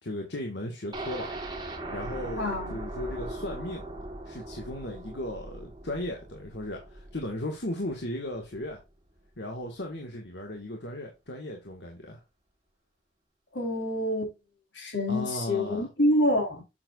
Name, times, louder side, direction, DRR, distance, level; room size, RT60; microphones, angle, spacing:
voice 1, 0.0-1.3 1.9-3.8 4.3-8.8 9.4-12.2 15.1-15.9, left 1 dB, 70° left, 1.7 m, -36 dB
sound 1, 0.9-8.8 9.1-9.2 9.6-9.7, right 2 dB, 25° right, 1.7 m, -40 dB
voice 2, 2.4-2.8 13.5-14.3 14.8-16.6, left 1 dB, 85° left, 4.1 m, -27 dB
7.8 x 7.1 x 2.5 m
head